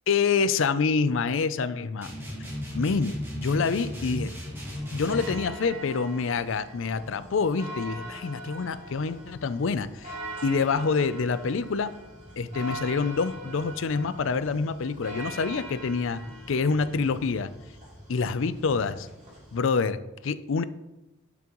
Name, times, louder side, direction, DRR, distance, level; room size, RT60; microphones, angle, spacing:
voice 1, 0.1-2.1 2.7-4.3 4.9-10.2 10.4-11.9 12.4-16.2 16.5-17.5 18.1-19.1 19.5-20.6, left 5 dB, 65° left, 14 dB, 0.4 m, -26 dB
sound 1, 2.0-5.5, left 1 dB, 10° right, 2.0 m, -35 dB
sound 2, 4.7-19.6, right 1 dB, 35° right, 3.0 m, -42 dB
10.5 x 6.0 x 3.0 m, 0.96 s
head